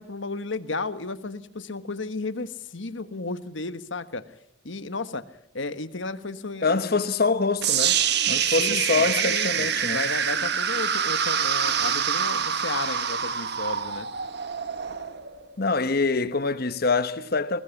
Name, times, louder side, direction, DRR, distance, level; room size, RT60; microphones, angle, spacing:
voice 1, 0.0-4.2 4.6-5.2 5.5-7.0 8.4-14.1, left 3 dB, 70° left, 1.4 m, -33 dB
voice 2, 6.6-8.0 8.3-10.0 15.6-17.6, left 4 dB, 50° left, 1.1 m, -25 dB
sound 1, 7.6-15.7, right 8 dB, 55° right, 1.4 m, -26 dB
21.0 x 20.0 x 7.2 m
head